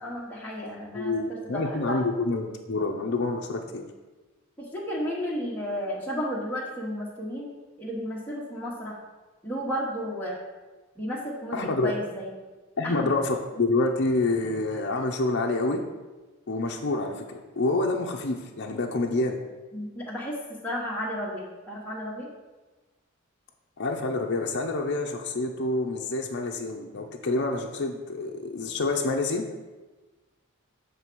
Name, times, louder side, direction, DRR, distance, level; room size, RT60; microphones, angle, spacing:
voice 1, 0.0-2.0 4.6-9.0 9.4-10.4 11.0-12.3 12.8-13.1 19.7-22.3, equal, 10° left, -5 dB, 1.1 m, -33 dB
voice 2, 0.9-3.8 11.5-11.9 12.8-15.8 16.5-19.4 23.8-29.4, left 2 dB, 55° left, 2 dB, 0.6 m, -27 dB
7.3 x 3.4 x 6.0 m, 1.2 s
head